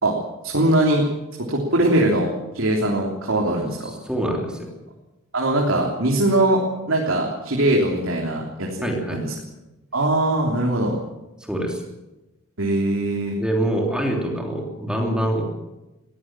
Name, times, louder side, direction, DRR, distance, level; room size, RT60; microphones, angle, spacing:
voice 1, 0.4-1.1 1.5-2.3 2.5-3.9 5.3-6.6 6.9-9.3 9.9-10.9 12.6-13.4, right 1 dB, 70° right, -1 dB, 3.4 m, -21 dB
voice 2, 3.9-4.7 8.8-9.3 11.4-11.8 13.4-15.4, right 1 dB, 5° right, 1 dB, 3.3 m, -25 dB
21.5 x 16.0 x 7.5 m, 1.0 s
head